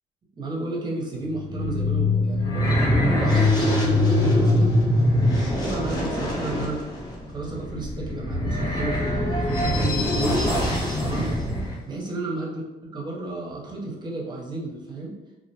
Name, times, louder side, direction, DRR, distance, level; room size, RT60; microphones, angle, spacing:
voice 1, 0.4-4.8 5.6-6.8 7.3-10.4 11.0-11.3 11.8-12.6 12.9-15.1, right 2 dB, 25° right, -2 dB, 0.6 m, -32 dB
sound 1, 1.2-11.7, left 1 dB, 25° left, 0.7 m, -23 dB
2.4 x 2.1 x 2.7 m, 1.1 s
cardioid pair, 110°, 17 cm